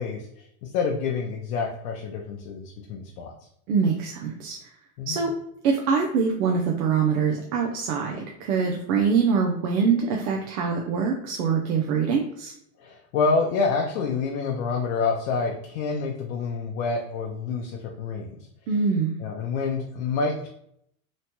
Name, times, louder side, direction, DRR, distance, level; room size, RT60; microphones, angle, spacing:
voice 1, 0.0-3.3 5.0-5.2 12.8-18.4 19.2-20.5, left 4 dB, 65° left, 1 dB, 0.6 m, -27 dB
voice 2, 3.7-4.7 5.1-5.3 5.6-12.5 18.7-19.2, right 5 dB, 70° right, 0 dB, 0.6 m, -24 dB
3.1 x 2.1 x 2.8 m, 0.72 s
supercardioid pair, 150°, 45 cm